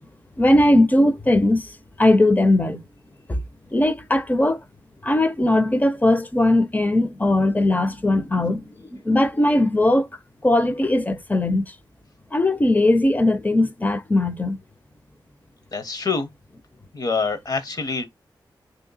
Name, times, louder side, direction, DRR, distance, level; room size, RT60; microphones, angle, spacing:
voice 1, 0.4-1.7 2.0-2.8 3.3-3.4 3.7-4.6 5.0-10.1 10.4-11.7 12.3-14.6, left 1 dB, 20° left, 0.6 m, -19 dB
voice 2, 15.7-16.3 16.9-18.1, left 4 dB, 50° left, 0.9 m, -25 dB
3.1 x 2.9 x 4.0 m
wide cardioid pair, 105°, 8 cm